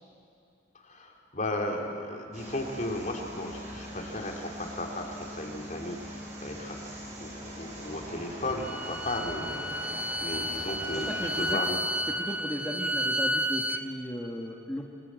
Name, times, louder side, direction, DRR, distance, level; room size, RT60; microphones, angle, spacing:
voice 1, 0.7-11.8, left 1 dB, 40° left, 1 dB, 3.4 m, -35 dB
sound 1, 2.3-11.5, equal, 40° right, 6.0 m, -42 dB
Bowed string instrument, 8.5-13.8, right 1 dB, 10° right, 0.9 m, -31 dB
voice 2, 10.9-11.6 12.1-14.8, equal, 10° left, -2 dB, 1.7 m, -36 dB
28.0 x 24.5 x 7.7 m, 2.5 s
head